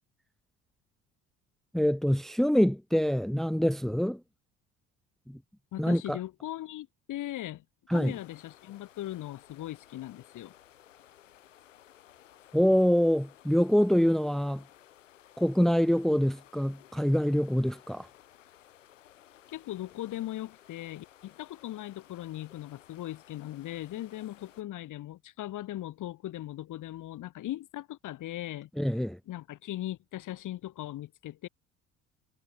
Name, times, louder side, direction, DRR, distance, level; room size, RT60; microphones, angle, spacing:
voice 1, 1.7-4.2 5.3-5.4 5.8-6.2 7.9-8.1 12.5-14.6 15.4-18.1 28.8-29.2, equal, ahead, 1.1 m, -25 dB
voice 2, 5.7-7.6 7.9-10.5 19.5-28.7 29.3-31.5, left 14 dB, 55° left, 2.2 m, -39 dB
sound 1, 7.9-24.6, left 12 dB, 90° left, 5.0 m, -57 dB
hypercardioid pair, 65°, 36 cm